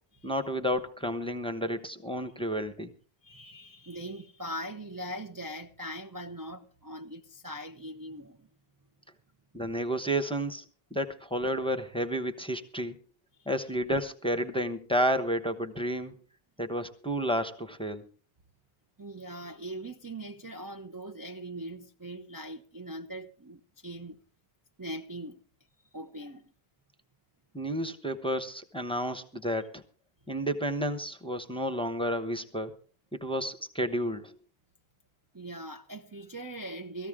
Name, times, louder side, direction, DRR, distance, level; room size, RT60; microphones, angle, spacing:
voice 1, 0.2-2.9 9.5-10.6 10.9-13.0 13.5-16.2 16.6-18.0 27.5-29.8 30.3-32.7 33.1-34.4, equal, 5° left, 1.0 m, -31 dB
voice 2, 3.2-8.5 13.3-13.5 19.0-24.2 24.8-25.4 25.9-26.5 35.3-37.1, right 1 dB, 20° right, 0.7 m, -41 dB
19.0 x 14.5 x 3.6 m
omnidirectional pair, 1.1 m